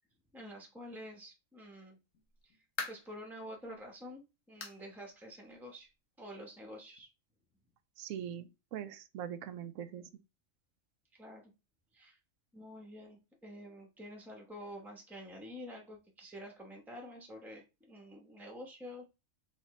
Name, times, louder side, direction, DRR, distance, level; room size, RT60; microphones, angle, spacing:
voice 1, 0.3-2.0 2.9-5.9 6.2-7.1 11.2-11.5 11.9-12.2 12.5-19.1, equal, ahead, 0.9 m, -48 dB
sound 1, 2.1-3.2 3.7-3.8 4.6-4.9 5.2-5.3 5.8-5.9 7.0-7.1, left 5 dB, 80° left, 1.3 m, -42 dB
voice 2, 8.0-10.0, right 9 dB, 85° right, 1.0 m, -42 dB
4.3 x 3.7 x 3.1 m
omnidirectional pair, 1.3 m